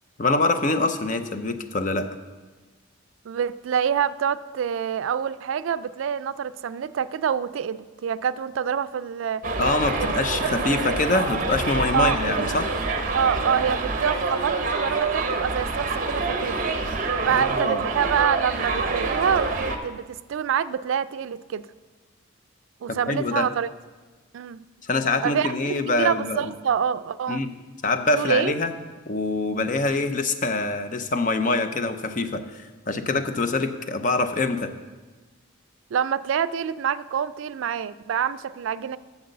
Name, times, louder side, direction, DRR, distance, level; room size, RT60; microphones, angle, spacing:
voice 1, 0.2-2.2 9.6-12.7 17.3-17.9 22.9-23.5 24.8-26.5 27.3-27.5 27.8-28.7 29.1-32.6 32.9-34.7, left 3 dB, 40° left, 9 dB, 0.6 m, -25 dB
voice 2, 3.3-9.4 10.0-10.1 10.4-10.6 11.9-12.2 13.1-16.6 17.2-21.6 22.8-23.7 24.3-24.6 25.2-27.4 28.1-28.6 35.9-39.0, right 8 dB, 75° right, 15 dB, 0.3 m, -26 dB
Subway metro underground, 9.4-19.8, right 3 dB, 40° right, 0.8 m, -26 dB
7.8 x 7.2 x 6.6 m, 1.3 s
head